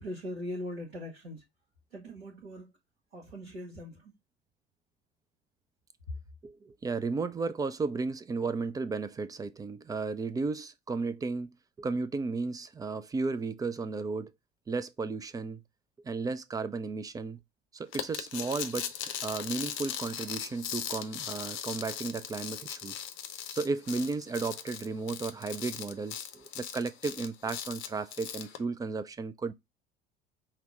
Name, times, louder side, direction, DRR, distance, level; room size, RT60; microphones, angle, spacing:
voice 1, 0.0-1.4 1.9-2.7 3.1-4.1, equal, 85° right, 1.2 m, -40 dB
voice 2, 6.4-11.5 11.8-14.3 14.7-15.6 16.0-17.4 17.7-18.9 19.2-23.0 23.5-29.5, right 4 dB, 10° right, 0.3 m, -34 dB
sound 1, 17.9-28.6, left 9 dB, 40° left, 0.7 m, -39 dB
5.7 x 2.1 x 3.6 m
figure-of-eight pair, 65°, 31 cm